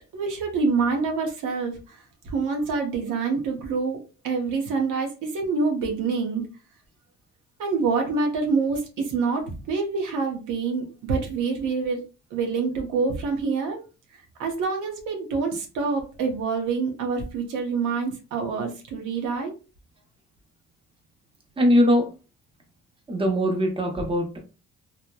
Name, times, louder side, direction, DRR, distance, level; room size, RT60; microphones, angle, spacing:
voice 1, 0.1-4.0 4.2-6.4 7.6-12.0 12.3-13.8 14.4-19.5, right 4 dB, 90° right, 2 dB, 0.8 m, -26 dB
voice 2, 21.6-22.1 23.1-24.4, equal, 20° right, 2 dB, 0.7 m, -21 dB
2.9 x 2.1 x 2.2 m, 0.33 s
cardioid pair, 90°, 30 cm